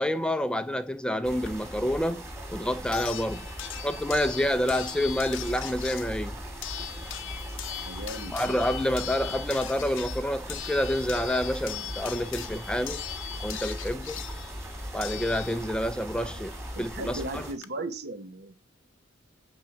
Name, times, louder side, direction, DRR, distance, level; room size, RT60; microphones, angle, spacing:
voice 1, 0.0-3.5 3.8-6.4 8.3-13.0 13.4-14.2 14.9-17.5, left 1 dB, 5° left, 0.5 m, -28 dB
sound 1, 1.2-17.5, equal, 15° right, 2.4 m, -39 dB
sound 2, 1.5-1.6 2.9-15.9 17.2-17.3 17.6-17.7, left 12 dB, 70° left, 0.8 m, -40 dB
voice 2, 7.8-8.6 16.0-16.4 16.7-18.5, right 2 dB, 55° right, 1.1 m, -37 dB
11.5 x 3.9 x 7.2 m
head